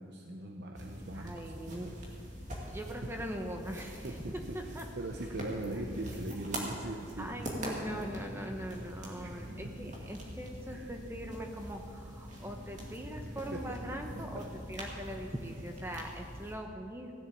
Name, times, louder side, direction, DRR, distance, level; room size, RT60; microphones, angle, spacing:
voice 1, 0.0-1.9 3.0-3.1 4.0-7.4 9.2-9.3 10.7-10.9 13.2-13.8 14.3-14.4, right 2 dB, 55° right, 2 dB, 0.8 m, -41 dB
sound 1, 0.7-16.5, right 1 dB, 40° right, 2.4 m, -43 dB
voice 2, 1.1-1.9 2.6-4.9 7.2-17.1, equal, 10° right, 3 dB, 0.9 m, -41 dB
16.5 x 7.3 x 8.4 m, 2.6 s
head